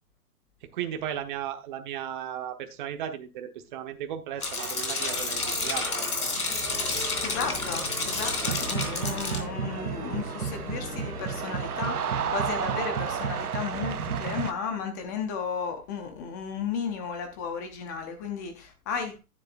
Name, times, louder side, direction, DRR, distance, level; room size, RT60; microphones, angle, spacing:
voice 1, 0.6-5.9, right 10 dB, 35° right, 1.1 m, -35 dB
sound 1, 4.3-14.5, left 2 dB, 40° left, 3.2 m, -42 dB
sound 2, 4.4-9.4, left 3 dB, 85° left, 3.1 m, -30 dB
sound 3, 4.6-14.5, right 8 dB, 90° right, 0.8 m, -33 dB
voice 2, 7.2-19.2, left 6 dB, 15° left, 0.5 m, -34 dB
10.0 x 9.9 x 2.5 m
hypercardioid pair, 140°, 43 cm